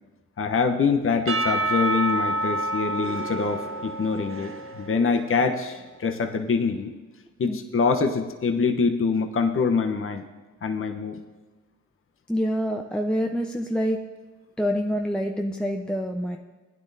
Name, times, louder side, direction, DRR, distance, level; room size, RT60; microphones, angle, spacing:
voice 1, 0.4-6.9 7.4-10.2 10.6-11.2, left 5 dB, 40° left, 5 dB, 1.0 m, -25 dB
Percussion / Church bell, 1.3-5.4, right 1 dB, 40° right, 1.2 m, -28 dB
voice 2, 12.3-14.0 14.6-16.4, equal, 5° left, 2 dB, 0.8 m, -26 dB
16.5 x 9.9 x 2.7 m, 1.2 s
supercardioid pair, 45°, 34 cm